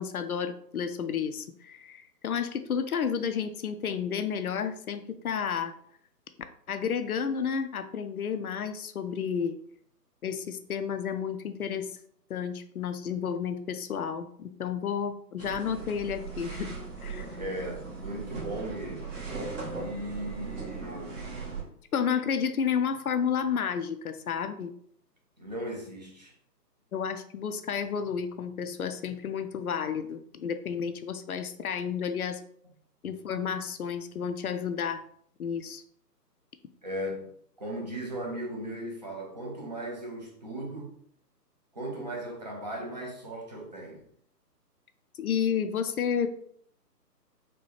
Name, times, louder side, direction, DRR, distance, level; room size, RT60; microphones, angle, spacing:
voice 1, 0.0-5.7 6.7-9.5 10.2-11.9 12.3-16.8 17.0-17.4 21.9-24.7 26.9-32.4 33.0-35.0 35.4-35.8 45.2-46.3, left 7 dB, 60° left, 0.5 m, -31 dB
sound 1, 15.4-21.6, right 4 dB, 50° right, 1.4 m, -38 dB
voice 2, 17.4-19.1 19.7-21.2 25.4-26.3 36.8-37.3 37.6-40.9 41.7-44.0, right 1 dB, 25° right, 0.6 m, -37 dB
3.9 x 2.2 x 3.3 m
figure-of-eight pair, 145°, 49 cm